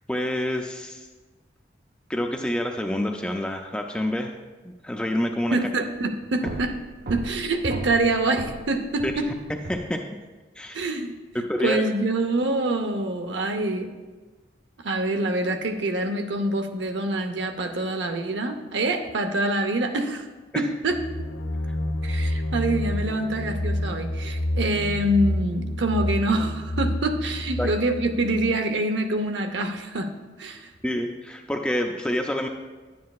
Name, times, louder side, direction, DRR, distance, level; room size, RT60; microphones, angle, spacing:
voice 1, 0.1-1.1 2.1-4.3 4.6-5.6 9.0-9.1 9.7-10.0 10.6-10.9 11.3-11.8 20.5-20.7 21.7-21.8 27.6-27.7 30.8-32.5, left 1 dB, 5° left, 3 dB, 0.4 m, -27 dB
sound 1, 5.4-5.6 5.9-9.9, right 2 dB, 50° right, 0.5 m, -37 dB
voice 2, 5.5-6.8 7.1-9.3 10.7-11.1 11.6-13.9 14.8-20.3 20.5-21.0 22.0-30.1 30.4-30.7, right 2 dB, 85° right, 6 dB, 0.8 m, -25 dB
sound 2, 20.8-28.6, left 1 dB, 85° left, 0.7 m, -29 dB
10.0 x 9.4 x 2.4 m, 1.3 s
head